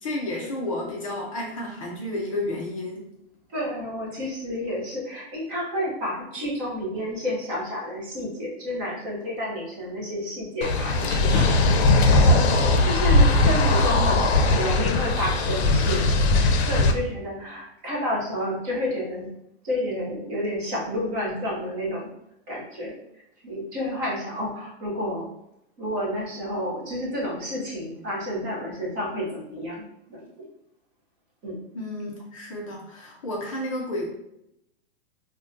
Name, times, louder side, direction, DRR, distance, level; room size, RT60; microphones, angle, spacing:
voice 1, 0.0-3.1 31.7-34.1, left 1 dB, 30° left, -2 dB, 0.5 m, -31 dB
voice 2, 3.5-19.3 19.6-22.1 22.5-22.9 23.4-25.3 25.8-29.8 30.1-30.2 31.4-31.6, equal, 15° right, -4 dB, 0.6 m, -30 dB
sound 1, 10.6-16.9, left 2 dB, 75° left, 0.6 m, -19 dB
4.9 x 2.2 x 2.5 m, 0.81 s
supercardioid pair, 175°, 33 cm